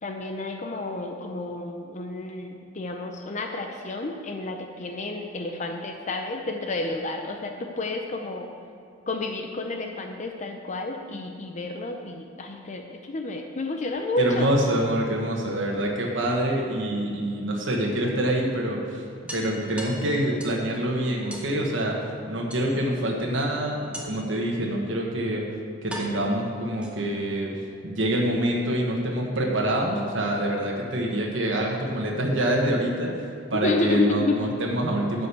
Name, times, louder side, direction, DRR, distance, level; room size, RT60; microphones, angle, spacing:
voice 1, 0.0-8.5 9.1-14.5 33.6-34.4, left 2 dB, 40° left, 3 dB, 0.6 m, -30 dB
voice 2, 14.2-19.0 19.3-25.5 25.8-27.5 27.8-35.3, right 1 dB, 75° right, -1 dB, 1.3 m, -26 dB
sound 1, 15.7-16.3 17.8-17.9 18.3-18.4 18.7-18.8 19.3-20.7 21.3-21.5 22.5-23.1 23.9-24.4 25.2-25.3 25.9-27.3, right 1 dB, 5° right, 1.4 m, -40 dB
11.5 x 5.3 x 6.9 m, 2.5 s
head